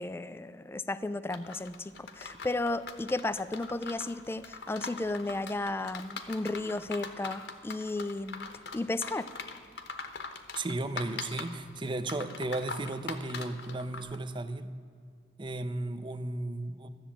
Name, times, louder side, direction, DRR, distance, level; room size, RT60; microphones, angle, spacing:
voice 1, 0.0-8.5 8.7-9.3, left 2 dB, 15° left, 13 dB, 0.3 m, -34 dB
sound 1, 1.3-14.2, left 4 dB, 70° left, 1.1 m, -42 dB
voice 2, 10.5-14.7 15.4-16.9, right 2 dB, 25° right, 11 dB, 0.6 m, -35 dB
13.5 x 7.2 x 8.7 m, 2.2 s
head